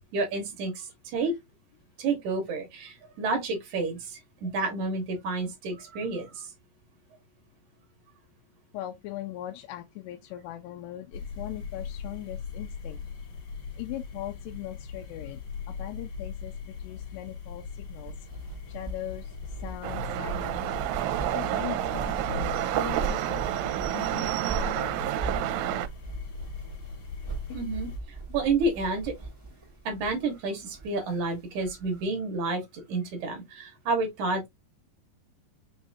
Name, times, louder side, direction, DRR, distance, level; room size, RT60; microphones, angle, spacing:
voice 1, 0.1-1.3 2.0-6.5 27.5-27.9 28.3-29.1 29.9-34.5, right 3 dB, 60° right, 2.3 m, -30 dB
voice 2, 8.7-13.0 13.8-15.4 15.7-18.1 18.7-20.7 21.3-23.4 23.9-24.3 24.6-25.1 27.5-27.6, left 14 dB, 80° left, 2.7 m, -40 dB
sound 1, 11.1-28.0, left 5 dB, 55° left, 2.6 m, -40 dB
sound 2, 17.8-32.0, right 3 dB, 15° right, 1.1 m, -40 dB
sound 3, 19.8-25.9, right 13 dB, 85° right, 2.7 m, -29 dB
6.3 x 2.9 x 2.6 m
omnidirectional pair, 4.9 m